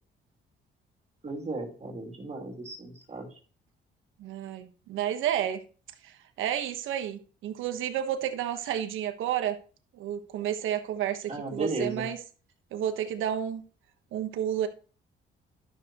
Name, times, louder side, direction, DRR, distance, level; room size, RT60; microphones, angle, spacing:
voice 1, 1.2-3.3 11.3-12.1, right 3 dB, 35° right, 2.7 m, -35 dB
voice 2, 4.2-5.6 6.0-9.6 9.9-12.2 12.7-13.6 14.1-14.7, right 10 dB, 85° right, 1.2 m, -31 dB
12.5 x 6.6 x 3.0 m
cardioid pair, 90°, 20 cm